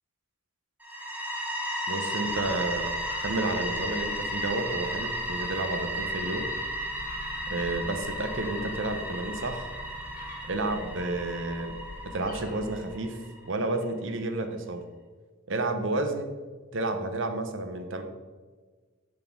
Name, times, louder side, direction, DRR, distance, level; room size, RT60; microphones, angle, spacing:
sound 1, 0.8-13.5, equal, 5° right, 0.9 m, -34 dB
voice 1, 1.9-2.9 3.2-6.5 7.5-9.7 10.5-11.7 12.0-13.2 13.4-14.8 15.5-16.3 16.7-18.0, right 2 dB, 60° right, 6 dB, 0.8 m, -31 dB
sound 2, 2.2-12.9, left 1 dB, 40° left, 1.1 m, -45 dB
10.5 x 4.3 x 4.6 m, 1.4 s
head